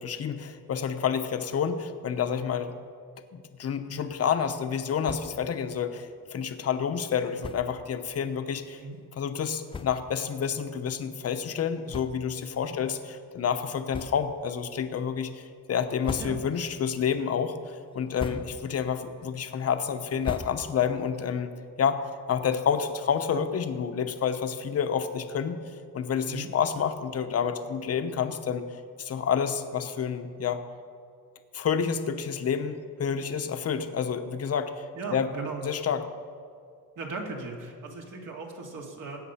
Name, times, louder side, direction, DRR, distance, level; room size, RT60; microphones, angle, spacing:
voice 1, 0.0-2.7 3.3-8.8 9.2-21.5 21.8-22.0 22.3-25.6 25.9-28.7 29.0-30.6 31.5-34.8 35.1-35.3 35.6-36.1, left 7 dB, 45° left, 8 dB, 0.9 m, -29 dB
sound 1, 5.0-5.5 5.8-5.9 6.2-6.4 7.4-7.8 8.5-8.7 9.3-9.4 9.7-10.2 10.8-10.9 11.9-12.5 12.9-13.0 13.9-14.5 14.9-15.4 15.8-16.7 17.1-17.5 17.9-18.8 19.1-21.0, left 5 dB, 15° left, 0.3 m, -41 dB
voice 2, 34.9-35.6 37.0-39.2, right 3 dB, 60° right, 1 dB, 2.3 m, -38 dB
19.0 x 8.2 x 5.7 m, 2.2 s
cardioid pair, 150°, 35 cm